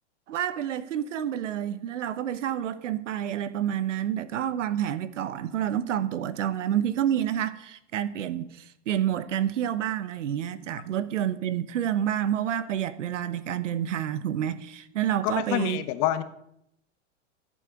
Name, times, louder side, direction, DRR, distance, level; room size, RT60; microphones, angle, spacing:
voice 1, 0.3-15.8, right 10 dB, 85° right, 1.1 m, -29 dB
voice 2, 15.2-16.2, left 13 dB, 45° left, 1.2 m, -27 dB
14.5 x 8.4 x 5.1 m
hypercardioid pair, 120°, 36 cm